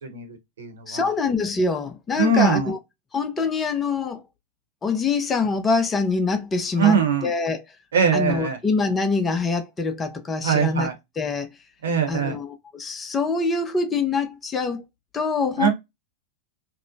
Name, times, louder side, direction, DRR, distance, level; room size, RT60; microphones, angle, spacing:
voice 1, 0.0-1.1 2.2-2.7 6.8-7.3 7.9-8.6 10.4-10.9 11.8-12.4 15.6-15.7, right 6 dB, 65° right, 0.9 m, -22 dB
voice 2, 0.9-2.8 3.1-4.2 4.8-7.0 7.2-7.6 8.1-10.9 11.2-11.5 12.1-14.8 15.1-15.7, left 4 dB, 20° left, 0.5 m, -24 dB
2.9 x 2.0 x 2.5 m
figure-of-eight pair, 90°, 0 cm